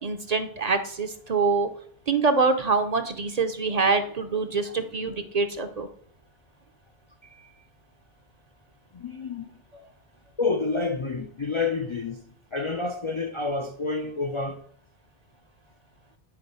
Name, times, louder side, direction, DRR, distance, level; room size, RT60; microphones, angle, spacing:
voice 1, 0.0-1.7 2.1-5.9, right 4 dB, 45° right, 0.7 m, -25 dB
voice 2, 8.9-9.5 10.4-12.2 12.5-14.6, left 3 dB, 40° left, 0.4 m, -29 dB
9.9 x 3.9 x 5.3 m
omnidirectional pair, 1.0 m